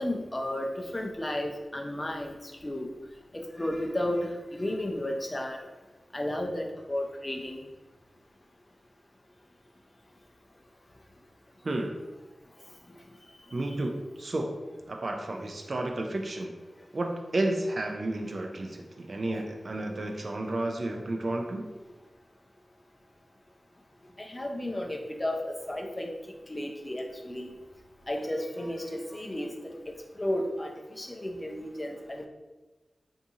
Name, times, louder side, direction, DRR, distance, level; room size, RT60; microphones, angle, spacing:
voice 1, 0.0-2.3 2.6-2.9 3.3-5.6 6.1-7.6 19.3-19.4 24.2-26.1 26.5-27.5 28.1-29.7 30.2-30.7 31.0-32.3, left 1 dB, 25° left, 2 dB, 0.5 m, -33 dB
voice 2, 11.6-12.0 13.5-14.6 14.9-16.5 16.9-21.7, right 2 dB, 55° right, 2 dB, 0.4 m, -32 dB
2.8 x 2.6 x 3.6 m, 1.2 s
wide cardioid pair, 80°, 0 cm